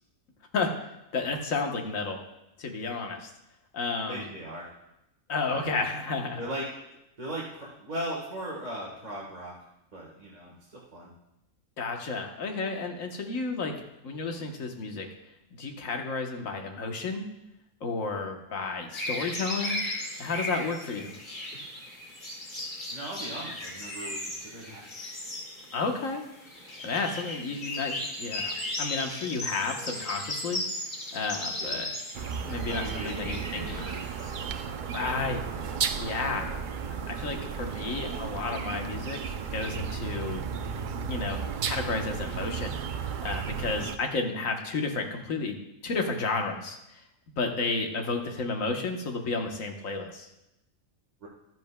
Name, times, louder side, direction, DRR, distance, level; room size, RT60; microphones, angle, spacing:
voice 1, 1.1-2.2 2.6-3.3 3.7-4.3 5.3-6.4 11.8-13.7 14.0-15.1 15.5-17.3 17.8-19.8 20.2-21.1 25.7-26.2 26.8-30.6 31.1-31.9 32.5-33.9 34.9-35.4 36.0-36.5 37.1-40.5 41.0-45.6 45.8-47.0 47.4-50.3, left 3 dB, 65° left, 3 dB, 1.5 m, -32 dB
voice 2, 4.1-4.7 5.5-5.8 6.4-6.6 7.2-9.5 9.9-11.1 22.9-24.9 31.6-31.9 32.7-34.2 36.3-36.6 38.0-38.4 51.2-51.3, right 1 dB, 30° right, -5 dB, 1.5 m, -39 dB
sound 1, 18.9-34.6, left 1 dB, 35° left, 1.8 m, -37 dB
sound 2, 32.1-44.0, right 6 dB, 90° right, 0.4 m, -34 dB
12.5 x 10.5 x 2.2 m, 0.88 s
omnidirectional pair, 1.5 m